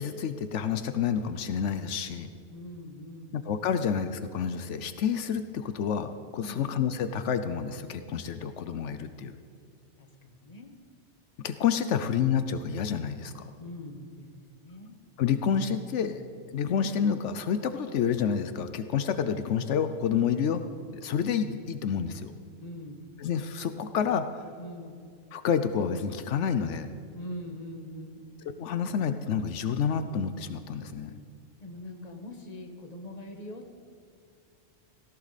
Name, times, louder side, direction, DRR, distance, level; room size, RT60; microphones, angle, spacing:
voice 1, 0.0-2.3 3.3-9.3 11.4-13.5 15.2-16.2 16.5-20.6 21.0-22.3 23.2-24.5 25.3-26.9 28.6-31.1, left 7 dB, 85° left, 10 dB, 1.0 m, -29 dB
voice 2, 2.5-3.3 6.4-6.6 10.0-10.7 13.6-15.0 22.6-23.0 24.6-25.0 27.1-28.3 30.8-31.2 31.6-33.7, left 1 dB, 35° left, 4 dB, 1.6 m, -43 dB
18.5 x 17.0 x 4.1 m, 2.3 s
omnidirectional pair, 1.2 m